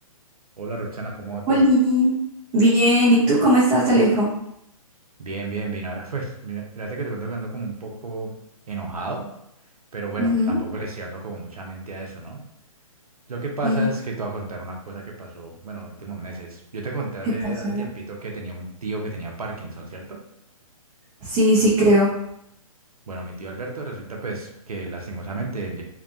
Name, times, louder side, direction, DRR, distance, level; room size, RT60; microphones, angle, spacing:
voice 1, 0.6-1.7 5.2-8.3 8.7-9.2 9.9-12.4 13.3-20.2 23.1-25.8, right 3 dB, 85° right, 0 dB, 0.7 m, -32 dB
voice 2, 1.5-2.1 2.5-4.3 10.2-10.6 13.6-13.9 17.4-17.9 21.2-22.1, equal, 25° right, -7 dB, 0.7 m, -18 dB
2.8 x 2.2 x 2.6 m, 0.77 s
figure-of-eight pair, 135°, 18 cm